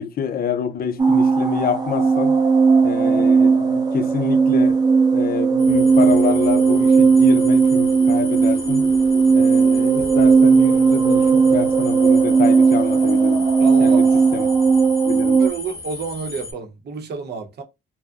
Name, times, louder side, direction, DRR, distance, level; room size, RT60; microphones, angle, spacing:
voice 1, 0.0-2.4 2.8-4.8 5.1-8.8 9.3-13.5 13.8-14.0 14.3-14.5 15.1-15.4, left 8 dB, 50° left, 0.5 m, -27 dB
sound 1, 1.0-15.5, right 5 dB, 20° right, 0.4 m, -16 dB
sound 2, 5.6-16.5, left 3 dB, 15° left, 0.7 m, -35 dB
voice 2, 13.6-14.2 15.4-17.6, right 5 dB, 55° right, 0.7 m, -30 dB
2.6 x 2.0 x 2.3 m
cardioid pair, 90°, 20 cm